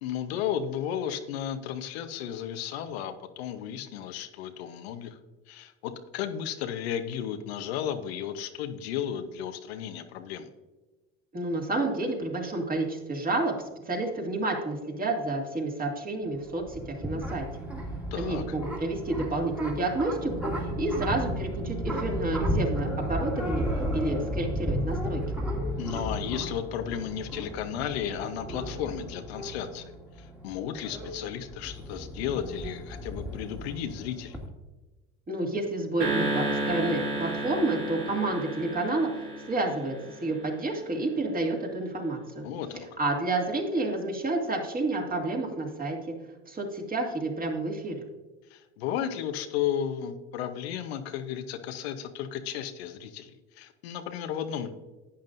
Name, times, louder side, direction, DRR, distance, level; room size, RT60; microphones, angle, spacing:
voice 1, 0.0-5.2 5.5-10.5 18.1-18.4 25.8-29.9 30.2-34.4 42.4-42.9 48.5-54.7, left 9 dB, 85° left, 8 dB, 0.9 m, -34 dB
voice 2, 11.3-13.5 13.9-17.5 18.1-23.6 23.9-25.2 35.3-39.1 39.5-42.4 43.0-46.1 46.5-48.0, right 2 dB, 30° right, 0 dB, 2.4 m, -30 dB
sound 1, 16.3-34.5, equal, 5° right, 2.0 m, -34 dB
sound 2, 36.0-40.5, right 2 dB, 75° right, 2.5 m, -32 dB
11.0 x 8.8 x 2.6 m, 1.2 s
supercardioid pair, 90°, 31 cm